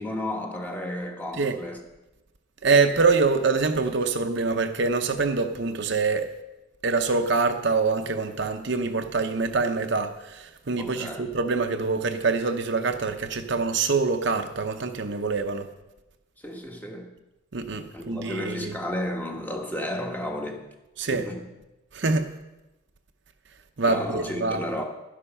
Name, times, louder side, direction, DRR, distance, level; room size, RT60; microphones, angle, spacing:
voice 1, 0.0-1.8 10.8-11.3 16.4-17.1 17.9-20.7 21.0-21.5 23.9-24.8, left 1 dB, 10° left, 1.2 m, -33 dB
voice 2, 2.6-6.3 6.8-15.7 17.5-18.7 21.0-21.3 21.9-22.3 23.8-24.6, right 4 dB, 55° right, 0.8 m, -25 dB
12.0 x 10.0 x 5.6 m
head